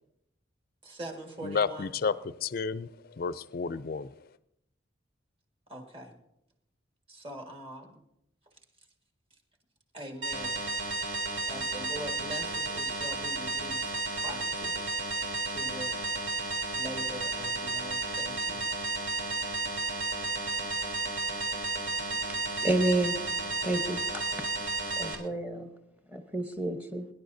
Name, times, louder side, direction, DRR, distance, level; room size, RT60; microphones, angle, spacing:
voice 1, 0.8-1.9 5.7-6.1 7.1-8.0 9.9-10.6 11.5-13.9 14.2-14.7 15.4-16.0 16.7-18.6, right 1 dB, 30° right, 2 dB, 1.7 m, -42 dB
voice 2, 1.4-4.3, left 5 dB, 45° left, 15 dB, 0.4 m, -32 dB
sound 1, 10.2-25.1, right 3 dB, 80° right, 2.9 m, -32 dB
voice 3, 22.6-23.2 23.6-24.2 25.0-25.7 26.1-27.1, right 1 dB, 10° right, 6 dB, 0.9 m, -29 dB
23.5 x 11.0 x 2.7 m, 0.82 s
head